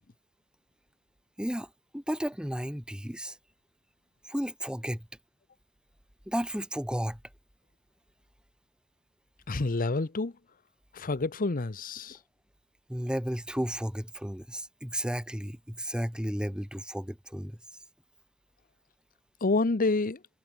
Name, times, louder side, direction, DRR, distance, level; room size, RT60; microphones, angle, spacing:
voice 1, 1.4-3.4 4.2-5.1 6.3-7.2 12.9-17.6, equal, 5° right, 4.0 m, -33 dB
voice 2, 9.5-10.3 10.9-12.2 19.4-20.2, left 3 dB, 40° left, 0.8 m, -28 dB
head